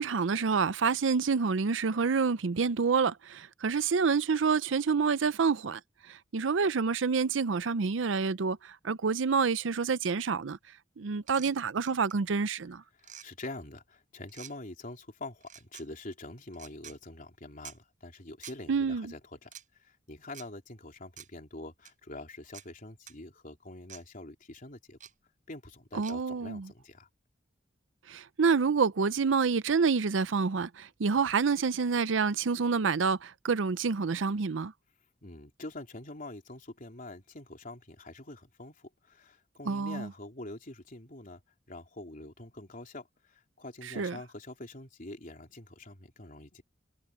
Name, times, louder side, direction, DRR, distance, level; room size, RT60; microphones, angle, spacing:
voice 1, 0.0-5.8 6.3-8.6 8.8-10.6 11.0-12.8 18.7-19.1 25.9-26.7 28.1-34.7 39.7-40.1 44.0-44.2, right 5 dB, 90° right, 0.6 m, -28 dB
sound 1, 11.3-11.5 11.9-12.1 13.0-13.3 14.3-14.5 15.4-15.8 16.5-17.0 17.6-17.8 18.4-18.6 19.4-19.6 20.3-20.5 21.2-21.3 21.8-21.9 22.5-22.7 23.1-23.2 23.9-24.0 25.0-25.1 26.0-26.1, right 9 dB, 45° right, 4.5 m, -47 dB
voice 2, 12.9-25.0 25.5-27.1 35.2-41.4 41.7-46.6, left 2 dB, 45° left, 3.5 m, -45 dB
head